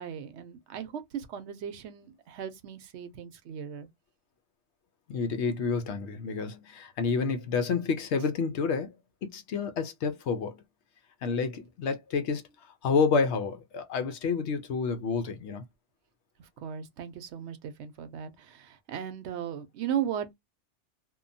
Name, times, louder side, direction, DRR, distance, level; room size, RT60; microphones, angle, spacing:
voice 1, 0.0-3.9 16.6-20.3, right 9 dB, 75° right, 0.9 m, -36 dB
voice 2, 5.1-8.9 9.2-10.6 11.2-12.4 12.8-15.6, left 5 dB, 70° left, 0.9 m, -29 dB
2.8 x 2.2 x 2.5 m
omnidirectional pair, 1.2 m